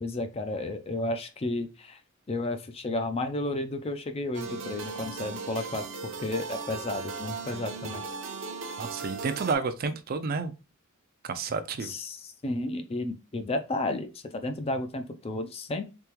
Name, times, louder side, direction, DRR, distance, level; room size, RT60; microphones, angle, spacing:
voice 1, 0.0-2.0 2.3-8.1 11.8-15.9, left 2 dB, 25° left, 0.4 m, -32 dB
sound 1, 4.3-9.5, right 4 dB, 60° right, 0.8 m, -37 dB
voice 2, 8.8-10.5 11.2-11.9, right 4 dB, 45° right, 0.4 m, -30 dB
3.6 x 3.3 x 3.0 m
head